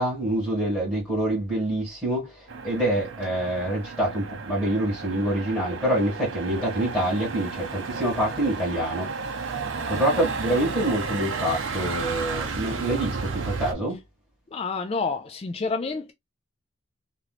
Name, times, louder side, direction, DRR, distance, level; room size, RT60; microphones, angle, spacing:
voice 1, 0.0-2.3 2.6-9.1 9.9-14.0, right 1 dB, 5° left, 1.9 m, -26 dB
Motor vehicle (road), 2.5-13.7, right 4 dB, 60° right, 0.7 m, -33 dB
voice 2, 14.5-16.1, left 4 dB, 30° left, 0.3 m, -28 dB
3.0 x 3.0 x 2.3 m
head